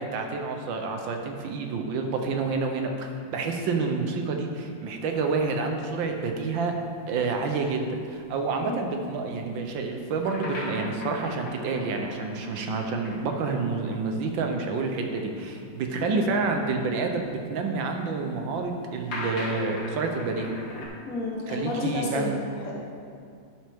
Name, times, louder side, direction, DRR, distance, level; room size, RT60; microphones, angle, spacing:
voice 1, 0.0-6.7 7.1-20.5 21.5-22.4, right 4 dB, 80° right, 4 dB, 1.5 m, -28 dB
sound 1, 5.0-14.0 14.2-14.3 15.3-20.9, left 1 dB, 75° left, 2.6 m, -42 dB
voice 2, 21.1-22.8, left 2 dB, 50° left, -3 dB, 1.6 m, -31 dB
11.0 x 6.1 x 3.5 m, 2.3 s
omnidirectional pair, 2.1 m